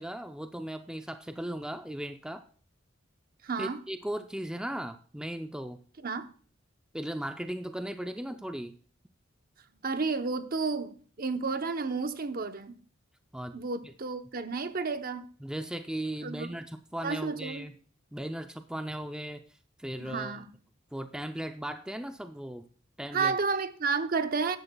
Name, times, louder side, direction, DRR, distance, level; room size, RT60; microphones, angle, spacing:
voice 1, 0.0-2.4 3.6-5.8 6.9-8.7 13.3-13.9 15.4-17.7 18.1-19.4 19.8-20.4 20.9-22.6 23.0-23.4, right 1 dB, 5° right, 0.4 m, -37 dB
voice 2, 3.4-3.8 6.0-6.3 9.8-12.8 13.5-15.3 16.2-16.6 17.0-17.6 20.0-20.5 23.1-24.6, right 4 dB, 50° right, 0.8 m, -31 dB
14.5 x 11.0 x 2.3 m
head